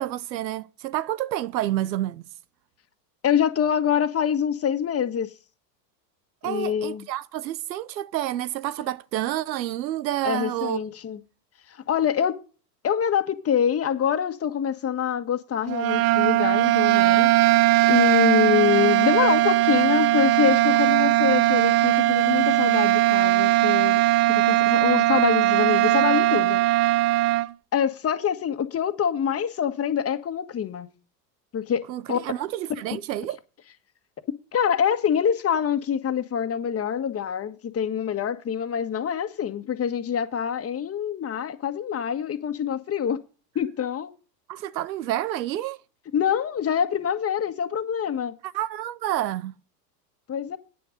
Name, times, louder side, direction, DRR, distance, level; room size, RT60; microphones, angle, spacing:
voice 1, 0.0-2.2 6.4-10.8 31.9-33.4 44.5-45.8 48.4-49.5, right 13 dB, 85° right, 0.8 m, -29 dB
voice 2, 3.2-5.3 6.4-7.0 10.2-11.2 11.9-12.4 12.8-17.3 17.9-24.0 24.3-26.6 27.7-30.9 31.5-31.8 32.1-32.2 34.5-43.2 43.5-44.1 46.1-48.3 50.3-50.6, left 8 dB, 30° left, 1.5 m, -25 dB
sound 1, 15.7-27.5, right 17 dB, 35° right, 0.5 m, -20 dB
9.4 x 9.3 x 5.1 m
hypercardioid pair, 95°, 49 cm